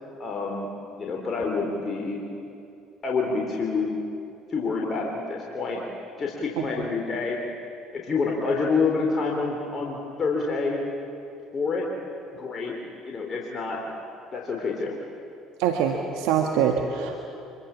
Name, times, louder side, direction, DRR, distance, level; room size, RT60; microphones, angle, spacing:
voice 1, 0.2-0.7 1.0-2.2 3.0-3.9 4.5-5.8 6.2-7.4 7.9-10.8 11.5-11.9 12.3-12.8 13.1-13.8 14.3-14.9, left 4 dB, 40° left, -1 dB, 3.8 m, -27 dB
voice 2, 15.6-17.2, right 8 dB, 75° right, 3 dB, 1.7 m, -24 dB
25.5 x 22.5 x 7.4 m, 2.6 s
hypercardioid pair, 65°, 0 cm